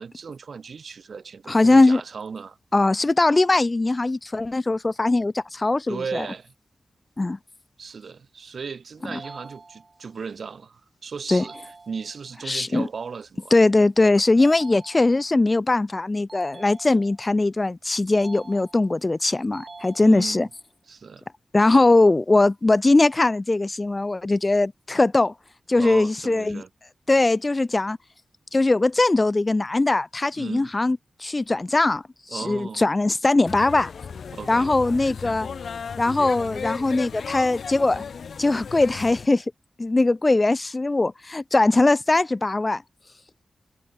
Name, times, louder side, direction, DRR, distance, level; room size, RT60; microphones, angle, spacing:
voice 1, 0.0-2.6 5.9-6.5 7.8-11.5 11.9-13.5 20.0-20.5 20.9-21.2 25.7-26.7 30.4-30.7 32.3-32.9 34.3-34.7, right 5 dB, 60° right, 2.0 m, -36 dB
voice 2, 1.5-2.0 2.7-6.3 7.2-7.4 11.3-11.4 12.5-12.9 13.5-20.5 21.5-25.3 25.7-26.6 27.1-28.0 28.5-33.9 34.5-35.5 36.0-38.0 38.4-39.4 39.8-42.8, left 2 dB, 25° left, 0.3 m, -20 dB
sound 1, 9.1-10.1 11.3-12.3 14.4-15.4 16.3-17.4 18.2-19.1 19.5-20.5, right 3 dB, 35° right, 5.4 m, -46 dB
sound 2, 33.5-39.3, left 6 dB, 70° left, 3.6 m, -35 dB
wide cardioid pair, 150°, 0 cm